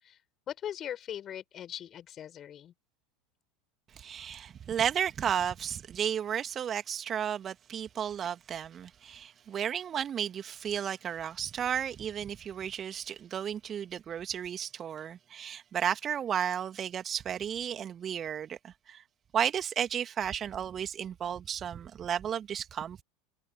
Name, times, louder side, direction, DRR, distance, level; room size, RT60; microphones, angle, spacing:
voice 1, 0.5-2.7, left 10 dB, 35° left, 6.9 m, -40 dB
voice 2, 3.9-19.0 19.3-23.0, right 9 dB, 30° right, 2.3 m, -33 dB
figure-of-eight pair, 75°, 0 cm